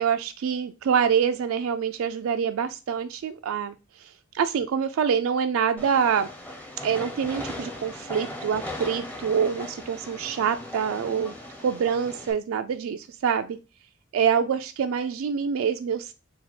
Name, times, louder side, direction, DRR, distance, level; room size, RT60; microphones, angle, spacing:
voice 1, 0.0-6.3 6.8-11.3 11.6-13.6 14.1-16.1, right 7 dB, 75° right, 8 dB, 0.3 m, -26 dB
Train, 5.8-12.3, left 1 dB, 10° left, 0.7 m, -38 dB
4.1 x 2.3 x 4.2 m, 0.29 s
head